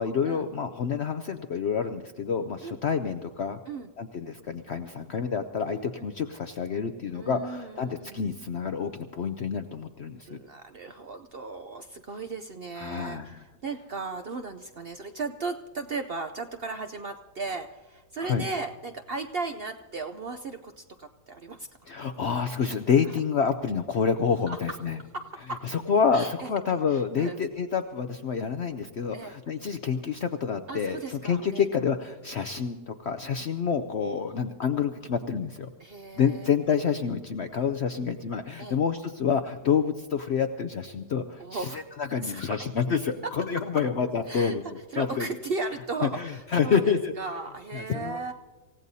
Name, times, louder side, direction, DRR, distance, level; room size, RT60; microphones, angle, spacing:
voice 1, 0.0-3.6 4.0-10.4 12.8-13.4 18.2-18.4 21.9-25.0 25.6-35.7 36.2-45.3 46.0-47.1 47.7-48.3, left 6 dB, 65° left, 8 dB, 0.6 m, -28 dB
voice 2, 7.1-8.2 10.3-21.9 24.5-24.6 25.1-25.6 26.1-26.5 26.9-27.4 29.1-29.4 30.7-31.6 35.8-36.5 38.6-38.8 41.4-41.8 42.2-42.6 43.2-43.3 44.3-44.6 44.9-48.3, right 3 dB, 65° right, 7 dB, 0.6 m, -36 dB
27.0 x 16.0 x 2.7 m, 1.3 s
omnidirectional pair, 1.8 m